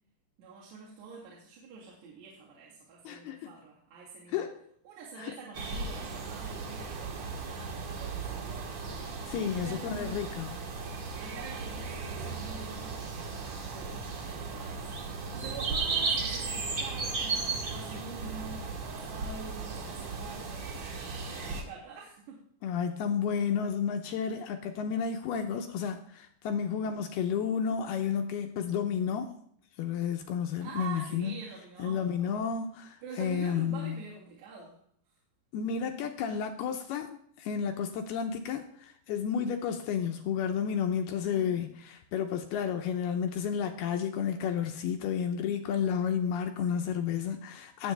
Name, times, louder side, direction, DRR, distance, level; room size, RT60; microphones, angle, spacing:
voice 1, 0.4-4.5 4.8-10.2 11.2-14.9 15.3-20.7 21.3-22.4 30.6-32.5 33.0-34.8 41.2-41.6, right 4 dB, 65° right, -6 dB, 4.3 m, -46 dB
voice 2, 3.0-3.5 4.3-4.6 5.2-5.3 9.3-10.6 22.6-29.3 29.8-31.3 31.8-34.0 35.5-47.9, left 7 dB, 80° left, 5 dB, 2.4 m, -31 dB
sound 1, 5.5-21.6, right 4 dB, 50° right, 2.3 m, -36 dB
19.0 x 8.0 x 3.4 m, 0.63 s
omnidirectional pair, 5.3 m